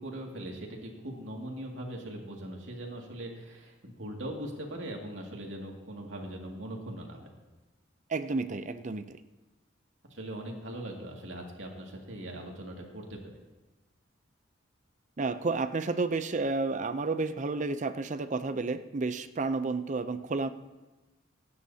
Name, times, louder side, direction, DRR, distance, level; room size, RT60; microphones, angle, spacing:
voice 1, 0.0-7.3 10.1-13.4, right 1 dB, 75° right, 0 dB, 2.3 m, -40 dB
voice 2, 8.1-9.2 15.2-20.5, right 3 dB, 40° right, 11 dB, 0.5 m, -31 dB
27.0 x 9.5 x 2.8 m, 1.1 s
head